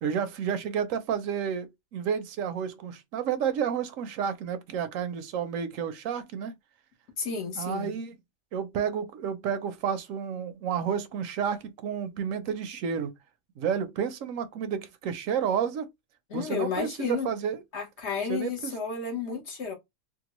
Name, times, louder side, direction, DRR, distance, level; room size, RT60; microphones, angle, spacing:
voice 1, 0.0-6.5 7.6-8.1 8.5-13.1 13.6-15.9 16.3-17.6 18.3-18.7, right 7 dB, 80° right, 1.0 m, -31 dB
voice 2, 7.2-7.9 16.3-17.3 17.7-19.7, left 5 dB, 60° left, 1.2 m, -32 dB
3.7 x 2.1 x 2.9 m
omnidirectional pair, 1.4 m